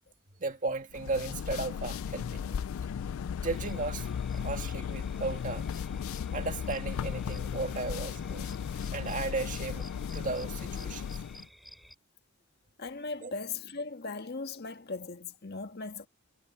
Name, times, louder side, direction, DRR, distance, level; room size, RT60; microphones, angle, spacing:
voice 1, 0.4-2.6 3.4-4.1 4.3-5.7 6.3-8.5 8.9-11.1 13.2-13.3, right 3 dB, 40° right, 2.2 m, -35 dB
sound 1, 0.9-11.5, left 7 dB, 80° left, 0.3 m, -36 dB
sound 2, 3.5-11.9, equal, ahead, 4.9 m, -54 dB
voice 2, 12.8-16.1, left 4 dB, 50° left, 1.5 m, -38 dB
head